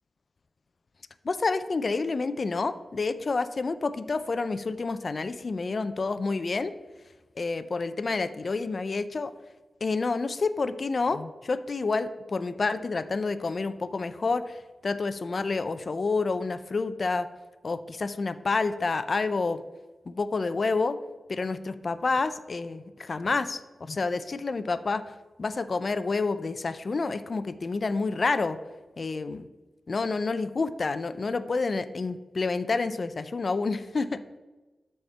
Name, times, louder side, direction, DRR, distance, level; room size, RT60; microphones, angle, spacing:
voice 1, 1.2-6.7 7.4-9.3 9.8-17.3 17.6-19.6 20.1-21.0 21.3-25.0 25.4-28.6 29.0-29.5 29.9-34.2, left 3 dB, 55° left, 11 dB, 0.4 m, -29 dB
13.0 x 4.3 x 3.3 m, 1.1 s
cardioid pair, 60°, 0 cm